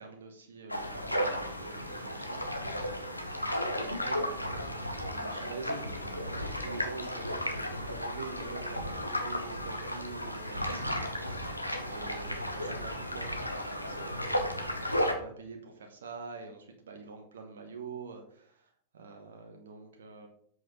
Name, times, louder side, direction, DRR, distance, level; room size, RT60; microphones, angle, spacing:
voice 1, 0.0-3.0 3.7-11.5 11.8-20.3, right 4 dB, 65° right, 3 dB, 1.0 m, -46 dB
sound 1, 0.7-15.1, equal, 90° left, 1.1 m, -34 dB
7.8 x 4.8 x 4.9 m, 0.63 s
figure-of-eight pair, 90°, 0 cm